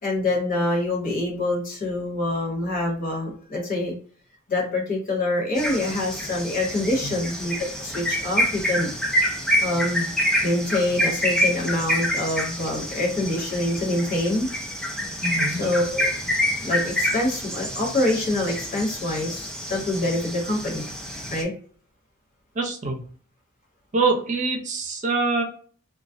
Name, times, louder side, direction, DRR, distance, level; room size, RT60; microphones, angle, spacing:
voice 1, 0.0-3.9 4.5-8.9 9.6-10.1 10.4-14.5 15.5-16.1 16.6-20.8 21.3-21.5, left 1 dB, 40° left, -1 dB, 1.0 m, -25 dB
sound 1, 5.6-21.4, equal, 5° left, 0.4 m, -27 dB
voice 2, 15.2-15.6 22.6-23.0 23.9-25.4, right 3 dB, 35° right, 2 dB, 0.6 m, -24 dB
2.3 x 2.0 x 2.6 m, 0.43 s
head